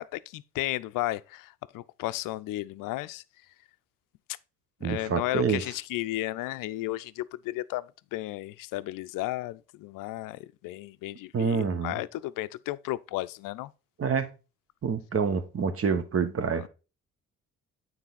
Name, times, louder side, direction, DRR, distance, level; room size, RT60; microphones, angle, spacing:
voice 1, 0.0-3.2 4.8-13.7 16.6-16.7, left 17 dB, 60° left, 0.5 m, -34 dB
voice 2, 4.8-5.6 11.3-11.9 14.0-14.3 14.8-16.6, right 6 dB, 40° right, 1.2 m, -27 dB
9.0 x 4.1 x 4.2 m
hypercardioid pair, 50°, 36 cm